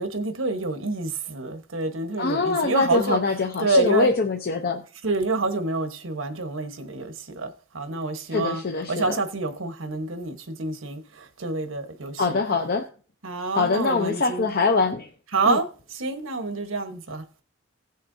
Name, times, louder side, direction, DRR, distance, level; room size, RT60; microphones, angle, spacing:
voice 1, 0.0-3.2 3.6-4.1 5.0-8.6 8.9-12.4 13.2-14.5 15.3-17.2, right 3 dB, 85° right, 1.2 m, -27 dB
voice 2, 2.2-4.8 8.3-9.2 12.2-12.9 13.6-15.1 15.5-15.6, left 4 dB, 50° left, 0.7 m, -23 dB
17.0 x 6.5 x 2.7 m
head